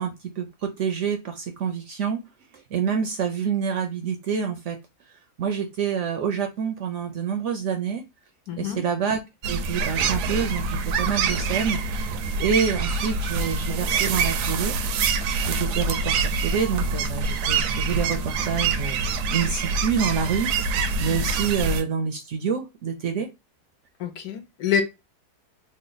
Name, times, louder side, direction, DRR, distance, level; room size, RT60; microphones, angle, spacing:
voice 1, 0.0-2.2 2.5-4.8 5.4-8.0 8.6-9.2 9.5-11.8 12.4-14.7 15.5-19.0 19.3-23.3, right 6 dB, 65° right, 0.7 m, -27 dB
voice 2, 8.5-8.8 24.0-24.8, left 8 dB, 75° left, 1.2 m, -26 dB
sound 1, 9.4-21.8, right 4 dB, 85° right, 1.1 m, -25 dB
3.2 x 2.1 x 3.9 m
omnidirectional pair, 1.7 m